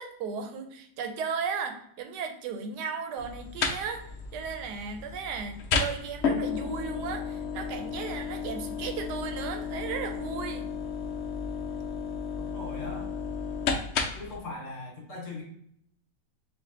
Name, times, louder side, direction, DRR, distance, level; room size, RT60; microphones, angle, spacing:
voice 1, 0.0-4.0 4.3-10.7, right 6 dB, 80° right, 6 dB, 1.2 m, -35 dB
sound 1, 3.2-14.4, left 5 dB, 80° left, 0.6 m, -33 dB
voice 2, 12.4-13.1 14.1-15.4, left 2 dB, 50° left, -3 dB, 1.6 m, -40 dB
3.5 x 2.7 x 3.8 m, 0.70 s
omnidirectional pair, 1.8 m